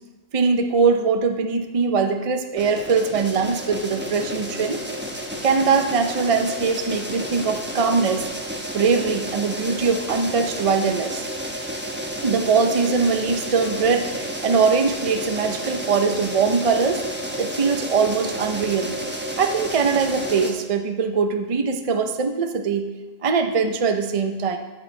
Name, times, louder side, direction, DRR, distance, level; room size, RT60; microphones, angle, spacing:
voice 1, 0.3-4.8 5.4-8.3 8.7-11.2 12.2-17.0 17.4-19.0 19.4-22.9 23.2-24.6, right 5 dB, 45° right, 6 dB, 0.4 m, -21 dB
sound 1, 2.6-20.5, equal, 10° right, 0.9 m, -31 dB
13.0 x 7.3 x 3.2 m, 1.1 s
omnidirectional pair, 1.3 m